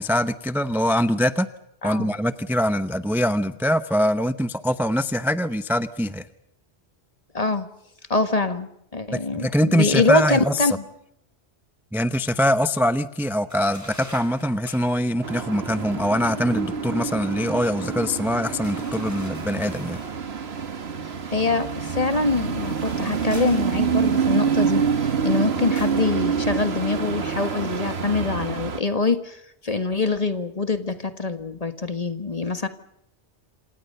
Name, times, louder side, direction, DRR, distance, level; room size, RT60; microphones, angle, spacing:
voice 1, 0.0-1.5 1.8-6.3 9.1-10.8 11.9-20.0, equal, ahead, 11 dB, 0.7 m, -23 dB
voice 2, 7.3-7.7 8.1-10.8 21.3-32.7, left 3 dB, 35° left, 9 dB, 1.6 m, -24 dB
sound 1, 13.5-15.1 18.6-20.2 22.5-24.3 25.8-26.1, equal, 15° left, 4.4 m, -44 dB
sound 2, 15.2-28.8, right 6 dB, 65° right, 1.7 m, -27 dB
sound 3, 15.7-20.3 20.6-20.7, left 1 dB, 65° left, 5.2 m, -43 dB
28.0 x 27.0 x 5.6 m, 0.79 s
omnidirectional pair, 1.1 m